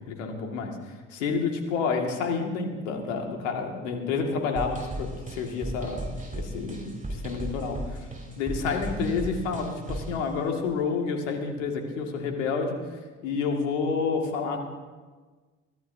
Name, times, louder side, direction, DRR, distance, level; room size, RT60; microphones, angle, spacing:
voice 1, 0.1-0.7 1.1-6.0 6.3-8.0 8.4-12.8 13.2-14.7, left 5 dB, 80° left, 3 dB, 2.1 m, -29 dB
sound 1, 4.6-10.2, right 1 dB, 20° right, 3.9 m, -35 dB
23.0 x 15.0 x 2.7 m, 1.4 s
hypercardioid pair, 50°, 37 cm